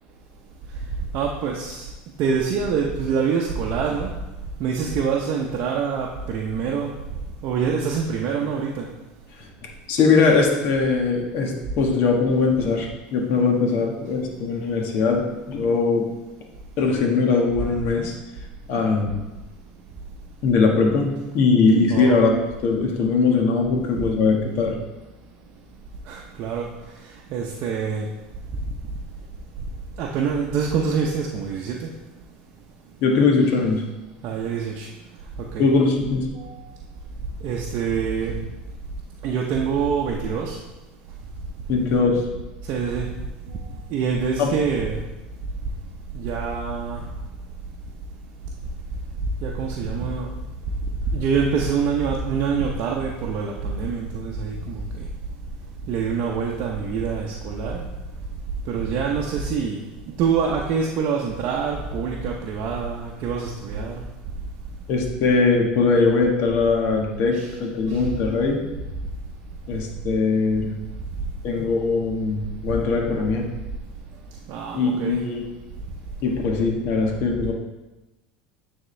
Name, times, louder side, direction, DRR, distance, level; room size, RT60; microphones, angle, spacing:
voice 1, 1.1-1.9 2.2-4.1 4.6-6.9 7.4-8.9 21.9-22.3 26.1-26.7 27.3-28.1 30.0-31.9 34.2-34.9 35.4-35.7 36.3-36.5 37.4-38.3 39.2-40.6 42.7-43.1 43.9-45.0 46.1-47.0 49.4-50.3 51.1-55.1 55.9-57.8 58.7-59.9 60.2-64.0 67.3-67.5 67.9-68.0 74.5-75.2, right 6 dB, 55° right, -1 dB, 0.7 m, -25 dB
voice 2, 9.9-16.1 16.8-18.1 18.7-19.2 20.4-22.3 22.6-24.8 33.0-33.8 35.6-36.3 41.7-42.3 44.4-44.5 64.9-68.6 69.7-70.7 71.4-73.5 74.7-75.4 76.2-77.5, left 4 dB, 60° left, 1 dB, 1.3 m, -21 dB
9.3 x 3.6 x 3.2 m, 1.1 s
supercardioid pair, 105°, 4 cm